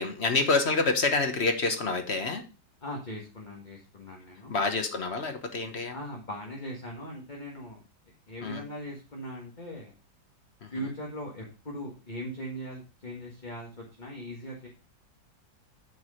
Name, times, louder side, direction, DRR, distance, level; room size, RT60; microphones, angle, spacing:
voice 1, 0.0-2.4 4.5-5.9 8.4-8.6 10.6-10.7, left 3 dB, 45° left, 6 dB, 1.0 m, -27 dB
voice 2, 2.8-4.6 5.9-7.8 8.3-9.9 10.7-14.7, equal, 25° left, -2 dB, 1.6 m, -39 dB
8.6 x 4.7 x 4.9 m, 0.34 s
omnidirectional pair, 2.1 m